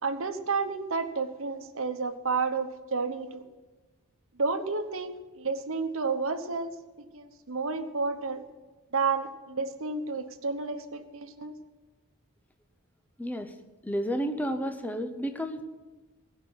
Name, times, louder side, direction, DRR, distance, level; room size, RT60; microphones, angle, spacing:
voice 1, 0.0-3.4 4.3-6.7 7.1-8.5 8.9-11.5, right 4 dB, 65° right, 8 dB, 1.0 m, -31 dB
voice 2, 13.2-13.5 13.8-15.6, equal, 10° left, 7 dB, 0.7 m, -31 dB
16.0 x 5.5 x 9.6 m, 1.2 s
head